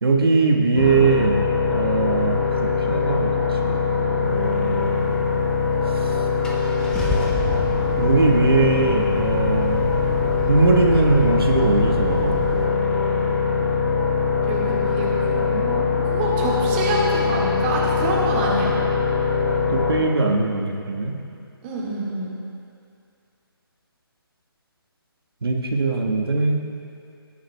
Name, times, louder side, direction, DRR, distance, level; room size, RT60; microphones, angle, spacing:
voice 1, 0.0-3.4 3.6-3.8 4.2-5.2 8.0-10.0 10.5-12.3 19.7-21.1 25.4-26.6, right 3 dB, 70° right, 1 dB, 1.4 m, -21 dB
sound 1, 0.8-20.0, left 5 dB, 30° left, 2.0 m, -22 dB
Car / Engine starting, 5.7-5.8 6.4-12.6, equal, 5° left, 0.5 m, -29 dB
voice 2, 14.4-18.7 21.6-22.4, right 2 dB, 20° right, -5 dB, 1.7 m, -27 dB
19.5 x 10.0 x 2.3 m, 2.5 s
figure-of-eight pair, 155°, 13 cm